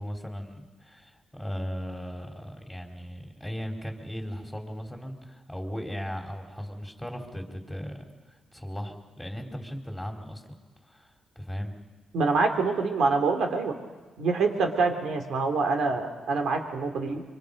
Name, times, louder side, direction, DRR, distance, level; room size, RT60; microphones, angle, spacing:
voice 1, 0.0-10.4 10.8-11.7, equal, 5° left, 2 dB, 3.8 m, -37 dB
voice 2, 12.1-13.7 14.2-17.2, right 4 dB, 80° right, 4 dB, 3.0 m, -25 dB
25.5 x 24.5 x 5.4 m, 1.3 s
cardioid pair, 75°, 0 cm